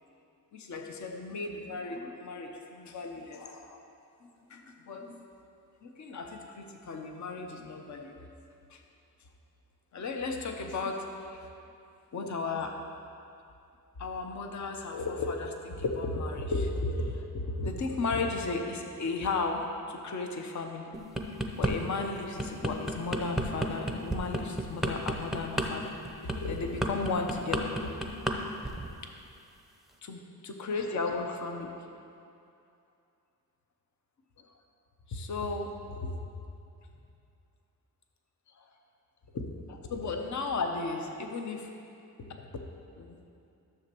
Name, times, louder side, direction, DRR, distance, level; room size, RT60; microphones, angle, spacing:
voice 1, 0.5-3.8 4.2-5.2 5.8-8.1 8.7-8.8 9.9-11.5 12.1-12.8 14.0-20.9 21.3-25.9 26.2-27.9 28.3-28.6 30.0-31.7 35.1-36.3 38.5-38.7 39.3-41.8 42.2-42.6 43.0-43.2, left 3 dB, 50° left, 3 dB, 0.8 m, -35 dB
sound 1, 20.9-21.7 22.2-28.4 28.6-28.9, right 1 dB, ahead, 0.7 m, -31 dB
13.0 x 6.9 x 3.0 m, 2.6 s
cardioid pair, 95°, 38 cm